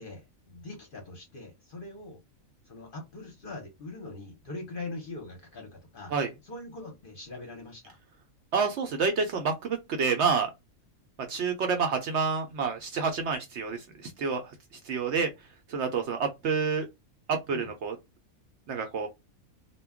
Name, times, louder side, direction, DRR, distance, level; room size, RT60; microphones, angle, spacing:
voice 1, 0.0-2.2 2.6-6.1 6.4-8.0 17.5-17.7, left 2 dB, 45° left, 0.8 m, -42 dB
voice 2, 8.5-10.5 11.3-14.5 14.8-15.3 15.7-16.9 17.3-18.0 18.7-19.1, right 5 dB, 65° right, 0.7 m, -28 dB
2.2 x 2.1 x 3.5 m
omnidirectional pair, 1.4 m